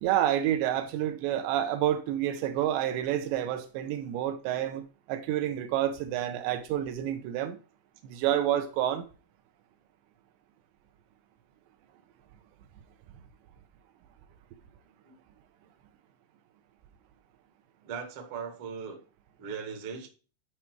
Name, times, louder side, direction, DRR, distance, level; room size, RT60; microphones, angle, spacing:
voice 1, 0.0-7.6 8.0-9.0, right 11 dB, 80° right, 3.0 m, -29 dB
voice 2, 17.8-19.0 19.4-20.1, right 6 dB, 55° right, 1.5 m, -38 dB
11.0 x 4.7 x 4.5 m
omnidirectional pair, 5.2 m